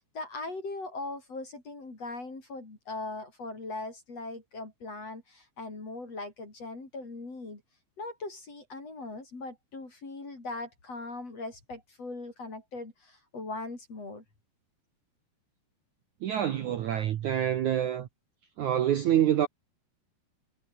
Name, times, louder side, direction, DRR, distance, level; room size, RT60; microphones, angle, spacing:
voice 1, 0.0-7.6 8.0-14.2, left 2 dB, 35° left, 6.1 m, -40 dB
voice 2, 16.2-18.1 18.6-19.5, right 10 dB, 80° right, 1.7 m, -26 dB
omnidirectional pair, 5.3 m